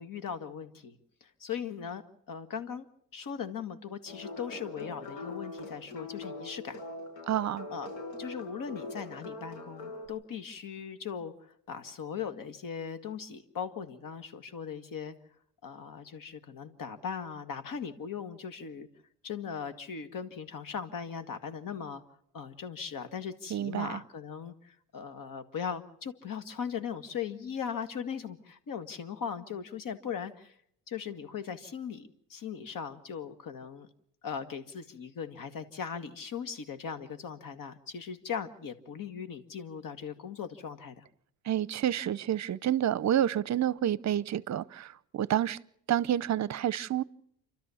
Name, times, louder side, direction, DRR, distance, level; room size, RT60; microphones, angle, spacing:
voice 1, 0.0-2.0 2.3-2.9 3.1-6.8 7.7-7.9 8.2-15.1 15.6-18.9 19.2-22.0 22.3-30.6 30.9-33.9 34.2-41.1, left 7 dB, 55° left, 1.9 m, -39 dB
sound 1, 4.1-10.1, left 2 dB, 75° left, 7.0 m, -42 dB
voice 2, 7.3-7.7 23.5-24.0 41.4-45.6 45.9-47.0, right 11 dB, 45° right, 0.8 m, -29 dB
29.0 x 13.0 x 7.1 m
cardioid pair, 100°, 40 cm